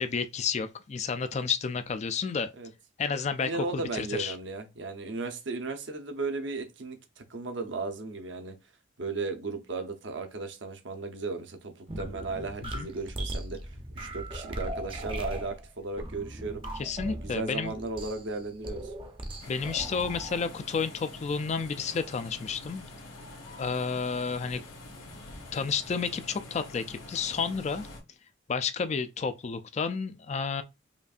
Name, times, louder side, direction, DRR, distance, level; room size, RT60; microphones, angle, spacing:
voice 1, 0.0-2.5 3.0-4.4 12.6-12.9 16.8-17.7 19.5-22.8 23.6-24.6 25.5-27.8 28.5-30.6, left 5 dB, 35° left, 0.3 m, -31 dB
voice 2, 3.4-8.5 9.0-13.6 13.9-16.6 17.1-18.9, right 3 dB, 65° right, 0.7 m, -35 dB
sound 1, 11.9-20.4, right 1 dB, 25° right, 0.6 m, -38 dB
sound 2, 19.4-28.0, left 2 dB, 85° left, 1.4 m, -46 dB
5.1 x 2.6 x 2.4 m
head